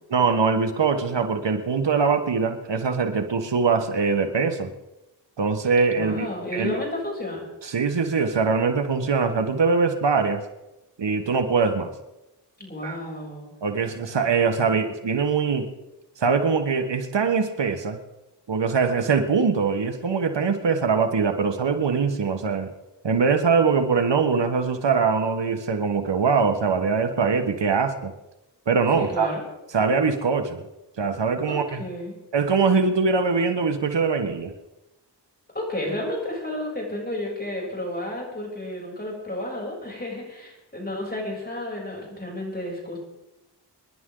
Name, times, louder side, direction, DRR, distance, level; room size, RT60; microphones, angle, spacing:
voice 1, 0.1-4.7 5.4-6.8 7.6-10.4 11.0-11.9 12.8-13.0 13.6-15.7 16.2-18.0 18.5-22.7 23.0-28.1 28.7-29.3 29.7-30.6 31.0-31.8 32.3-34.5, right 5 dB, 80° right, 7 dB, 1.4 m, -22 dB
voice 2, 5.9-7.5 12.6-13.5 29.0-29.4 31.5-32.1 35.5-43.0, left 1 dB, 20° left, -2 dB, 7.5 m, -32 dB
26.5 x 11.0 x 3.9 m, 0.98 s
wide cardioid pair, 55°, 43 cm